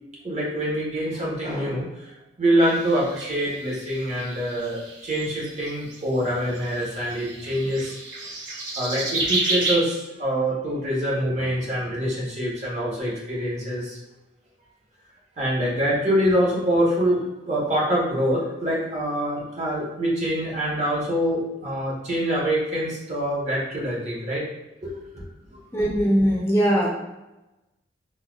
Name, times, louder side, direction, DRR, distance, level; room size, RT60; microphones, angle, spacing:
voice 1, 0.2-8.0 8.7-14.0 15.4-17.2 17.5-24.4 24.8-25.2, equal, 40° right, -6 dB, 1.1 m, -25 dB
sound 1, 2.6-6.0 6.5-9.7, right 2 dB, 85° right, 0.8 m, -31 dB
voice 2, 25.7-26.9, equal, 15° left, -5 dB, 0.5 m, -20 dB
4.3 x 2.3 x 2.3 m, 0.99 s
head